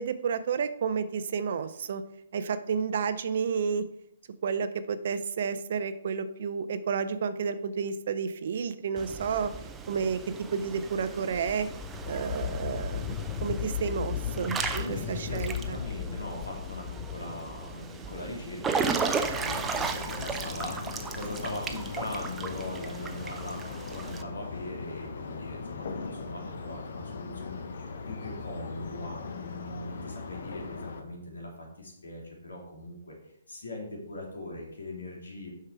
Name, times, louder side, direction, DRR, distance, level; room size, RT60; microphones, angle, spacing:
voice 1, 0.0-2.0 2.3-3.9 4.4-9.5 9.9-10.2 10.5-11.7 12.1-15.8, right 6 dB, 55° right, 12 dB, 0.5 m, -31 dB
Water / Splash splatter / Drip, 9.0-24.2, right 5 dB, 10° right, 0.6 m, -36 dB
sound 1, 11.6-18.0, left 11 dB, 40° left, 0.4 m, -36 dB
voice 2, 14.7-33.1 33.5-35.5, left 2 dB, 80° left, -1 dB, 2.9 m, -40 dB
sound 2, 18.8-31.0, left 4 dB, 60° left, 0.9 m, -39 dB
6.6 x 5.7 x 4.6 m, 0.77 s
hypercardioid pair, 135°, 0 cm